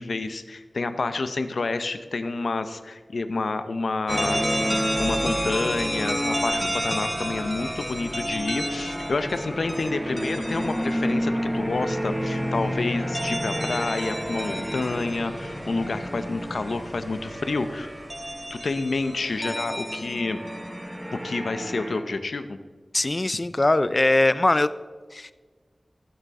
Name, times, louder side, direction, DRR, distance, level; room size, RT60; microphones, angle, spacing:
voice 1, 0.0-17.9 18.5-20.4 21.1-22.6, left 3 dB, 85° left, 10 dB, 0.7 m, -29 dB
sound 1, 4.1-22.0, equal, 5° right, 1.1 m, -29 dB
voice 2, 22.9-24.7 25.1-25.3, left 2 dB, 35° left, 15 dB, 0.4 m, -21 dB
15.0 x 6.9 x 3.7 m, 1.4 s
wide cardioid pair, 80°, 0 cm